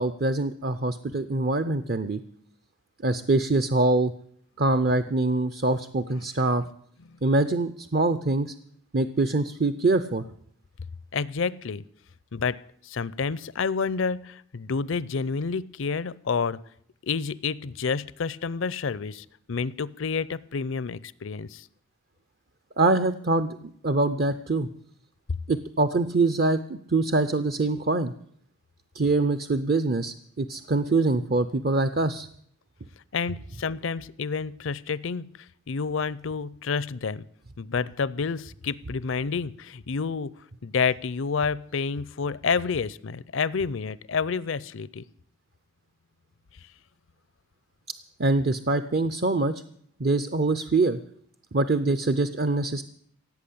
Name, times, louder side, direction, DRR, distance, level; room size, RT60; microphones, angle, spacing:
voice 1, 0.0-2.2 3.0-4.1 4.6-6.6 7.2-8.5 8.9-10.2 22.8-24.7 25.5-28.1 28.9-32.3 48.2-49.6 50.0-51.0 51.5-52.8, right 2 dB, 45° right, 12 dB, 0.6 m, -24 dB
voice 2, 11.1-11.8 12.3-12.6 12.8-16.6 17.0-21.7 33.1-35.3 35.7-37.3 37.6-40.3 40.6-45.0, left 5 dB, 65° left, 20 dB, 0.5 m, -29 dB
17.0 x 8.4 x 8.5 m, 0.64 s
head